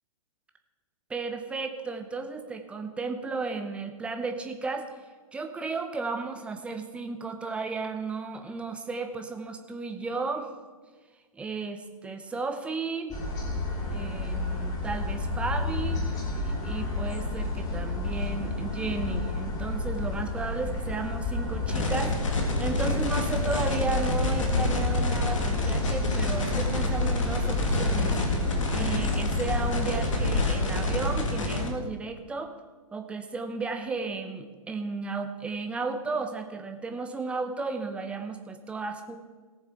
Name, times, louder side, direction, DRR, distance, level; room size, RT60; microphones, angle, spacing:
voice 1, 1.1-4.9 5.3-10.5 11.3-13.2 13.9-16.0 16.4-28.4 28.7-32.5 32.9-39.2, right 4 dB, 5° right, 6 dB, 0.8 m, -34 dB
sound 1, 13.1-31.1, left 2 dB, 20° left, 2.2 m, -31 dB
sound 2, 21.7-31.7, left 2 dB, 60° left, 2.0 m, -28 dB
18.0 x 7.1 x 4.4 m, 1.4 s
figure-of-eight pair, 120°, 19 cm